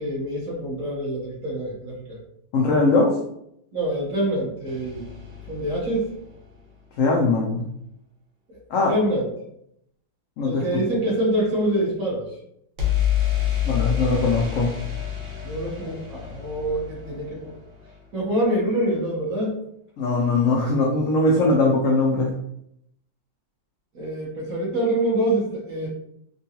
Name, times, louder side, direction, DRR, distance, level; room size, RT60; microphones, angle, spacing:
voice 1, 0.0-2.2 3.7-5.1 5.5-6.1 8.5-8.6 8.9-9.3 10.4-12.3 15.4-17.5 18.1-19.6 23.9-25.9, right 1 dB, 55° right, -5 dB, 1.3 m, -25 dB
voice 2, 2.5-3.2 7.0-7.7 8.7-8.9 10.4-10.7 13.6-14.7 20.0-22.4, left 2 dB, 80° left, -2 dB, 0.7 m, -20 dB
sound 1, 4.7-6.7 12.8-18.6, left 11 dB, 80° right, 1.5 m, -28 dB
3.7 x 2.3 x 2.7 m, 0.76 s
omnidirectional pair, 2.0 m